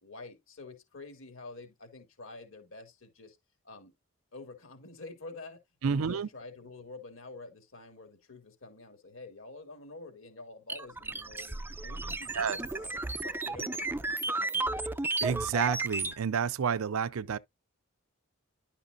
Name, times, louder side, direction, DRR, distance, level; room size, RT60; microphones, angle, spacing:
voice 1, 0.0-3.4 3.6-3.9 4.3-14.9, left 3 dB, 65° left, 3.1 m, -48 dB
voice 2, 5.8-6.3 12.3-12.6 15.2-17.4, right 6 dB, 75° right, 0.5 m, -30 dB
sound 1, 10.7-16.2, right 2 dB, 10° right, 0.4 m, -33 dB
11.0 x 5.6 x 2.7 m
head